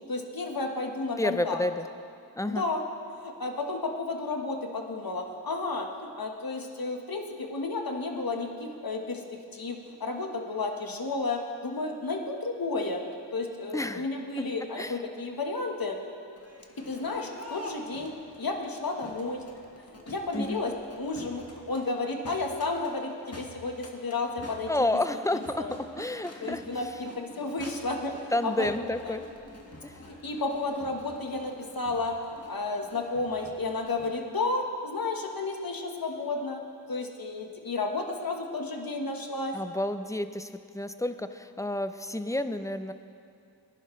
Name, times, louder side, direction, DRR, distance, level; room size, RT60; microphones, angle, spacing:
voice 1, 0.1-1.6 2.5-2.8 3.1-9.2 9.5-13.0 13.3-16.0 16.8-19.4 19.9-24.7 25.6-25.7 26.4-28.7 29.0-29.1 30.1-36.6 36.9-39.5, left 3 dB, 50° left, 3 dB, 1.4 m, -32 dB
voice 2, 1.2-1.9 2.4-2.6 13.7-14.1 14.8-15.0 20.3-20.6 24.7-25.6 26.0-26.9 28.3-29.2 29.8-30.0 39.5-42.9, left 1 dB, 10° left, 10 dB, 0.5 m, -30 dB
Crowd, 16.3-34.1, left 1 dB, 35° left, 1.7 m, -47 dB
20.0 x 11.0 x 3.2 m, 2.5 s
wide cardioid pair, 50°, 43 cm